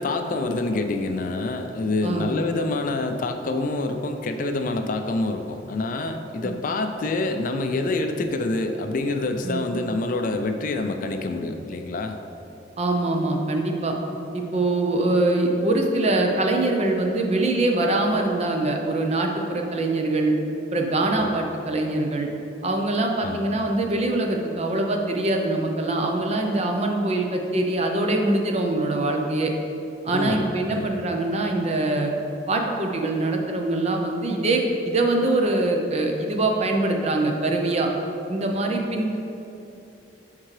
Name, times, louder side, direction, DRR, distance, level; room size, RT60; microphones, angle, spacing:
voice 1, 0.0-12.2 21.2-21.3 23.2-23.6 30.1-30.9, left 2 dB, 45° left, 6 dB, 0.4 m, -27 dB
voice 2, 12.8-14.0 14.3-20.3 20.7-22.3 22.6-29.5 30.0-32.1 32.5-37.9 38.3-39.2, right 2 dB, 35° right, 2 dB, 0.6 m, -23 dB
10.5 x 3.7 x 3.2 m, 2.8 s
head